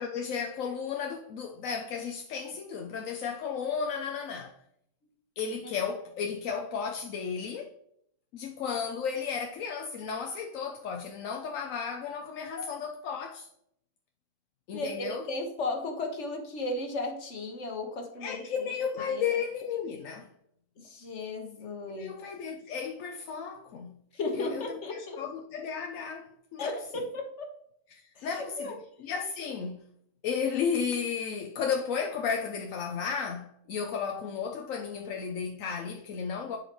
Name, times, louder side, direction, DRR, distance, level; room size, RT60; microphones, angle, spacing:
voice 1, 0.0-4.6 5.4-7.7 8.3-13.5 14.7-15.2 18.2-20.3 21.9-24.0 24.3-26.7 27.9-29.8 30.2-36.6, left 6 dB, 85° left, 1.1 m, -34 dB
voice 2, 14.7-18.7 19.1-19.2 20.8-22.2 24.1-25.2 26.6-27.5 28.1-28.8, left 2 dB, 60° left, 1.6 m, -35 dB
11.0 x 4.9 x 3.0 m
omnidirectional pair, 1.3 m